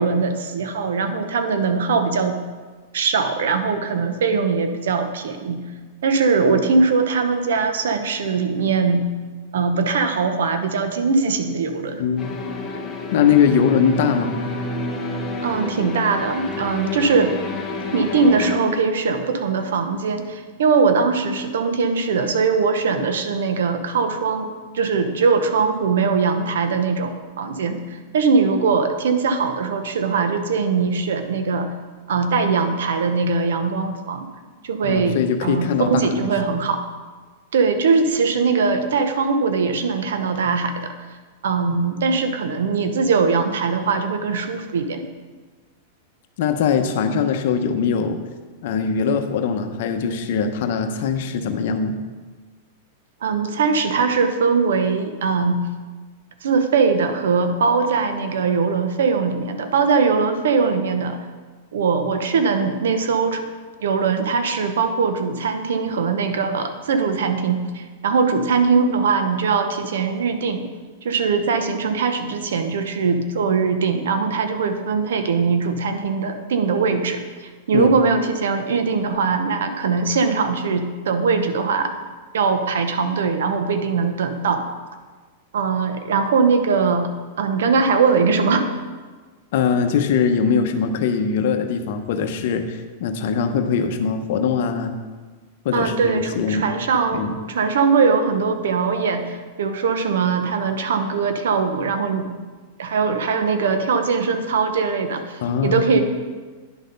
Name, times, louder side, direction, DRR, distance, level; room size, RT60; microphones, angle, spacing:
voice 1, 0.0-2.4 2.9-5.6 6.0-9.0 9.5-12.0 15.4-17.4 17.9-31.7 32.1-34.3 34.6-36.8 37.5-40.9 41.4-45.0 53.2-55.6 56.4-61.2 61.7-63.4 63.8-70.7 71.0-81.9 82.3-84.7 85.5-87.1 87.4-88.7 95.7-102.3 102.8-106.0, right 5 dB, 85° right, 7 dB, 0.9 m, -21 dB
voice 2, 12.0-12.3 13.1-14.3 34.8-36.3 46.4-48.2 48.6-52.0 77.7-77.9 89.5-94.9 95.6-96.7 97.1-97.3 105.4-105.9, left 6 dB, 65° left, 7 dB, 0.9 m, -21 dB
sound 1, 12.2-18.6, left 2 dB, 15° left, 1.4 m, -29 dB
10.5 x 4.1 x 5.2 m, 1.4 s
hypercardioid pair, 135°, 0 cm